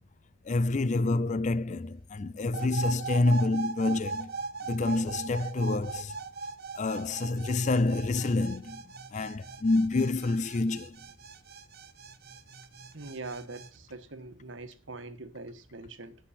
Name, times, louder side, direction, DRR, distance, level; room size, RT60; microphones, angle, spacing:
voice 1, 0.5-4.3 4.7-6.2 6.8-8.8 9.1-11.0, left 2 dB, 35° left, 0.4 m, -27 dB
sound 1, 2.5-13.7, right 4 dB, 50° right, 1.2 m, -39 dB
voice 2, 12.9-16.2, right 3 dB, 70° right, 1.4 m, -43 dB
15.5 x 6.2 x 4.2 m
head